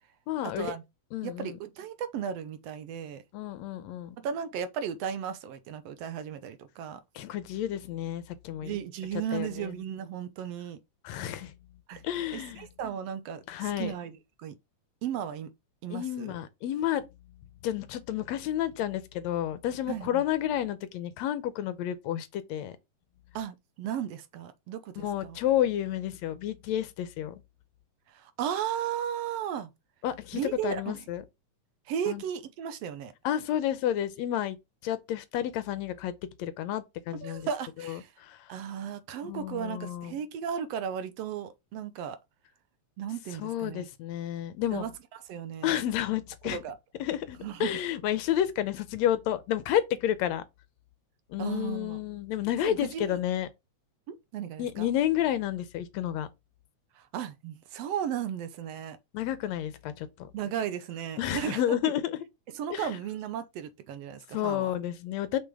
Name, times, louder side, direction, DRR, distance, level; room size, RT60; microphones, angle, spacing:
voice 1, 0.3-0.7 1.1-1.6 3.3-4.2 7.2-8.7 9.3-9.7 11.0-11.5 12.0-12.7 13.5-13.9 15.9-17.0 17.6-22.7 25.0-27.4 30.0-31.2 32.1-32.2 33.2-34.6 34.8-36.1 36.4-37.5 37.9-38.4 39.2-40.1 43.4-44.8 45.6-46.6 47.0-50.4 51.3-53.5 54.6-56.3 59.1-60.3 61.2-62.1 62.7-62.9 64.3-65.4, left 11 dB, 80° left, 1.9 m, -30 dB
voice 2, 1.2-3.2 4.2-7.0 8.6-10.8 11.9-12.0 12.3-14.6 15.0-15.5 15.8-16.4 19.9-20.2 23.4-25.4 28.1-29.7 30.3-31.1 31.9-33.1 37.2-38.1 38.5-42.2 43.0-43.9 44.7-44.9 45.3-45.8 46.4-46.8 47.4-47.8 51.4-52.0 52.6-53.2 54.1-54.9 57.0-59.0 60.3-61.9 62.5-64.8, right 9 dB, 70° right, 1.7 m, -35 dB
6.2 x 6.0 x 3.6 m
omnidirectional pair, 3.3 m